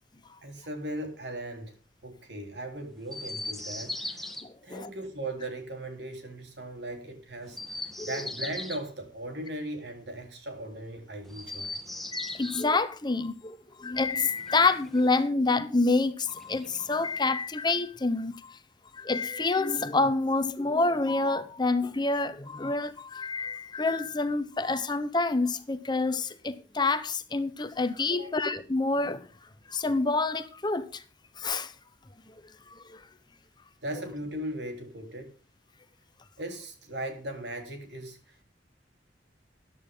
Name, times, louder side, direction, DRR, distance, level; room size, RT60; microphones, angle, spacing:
voice 1, 0.4-1.7 2.0-4.3 4.6-11.8 28.1-28.4 33.8-35.4 36.4-38.3, right 1 dB, 65° right, 3.8 m, -38 dB
Chirp tweet, 3.1-4.4 7.4-8.9 11.2-12.7 14.1-15.2 16.3-17.2, left 1 dB, ahead, 1.4 m, -39 dB
voice 2, 4.4-4.9 8.0-8.2 12.1-18.6 18.9-29.2 29.7-31.0 31.4-31.7 32.7-33.0, left 3 dB, 25° left, 0.8 m, -28 dB
14.0 x 11.0 x 3.8 m
head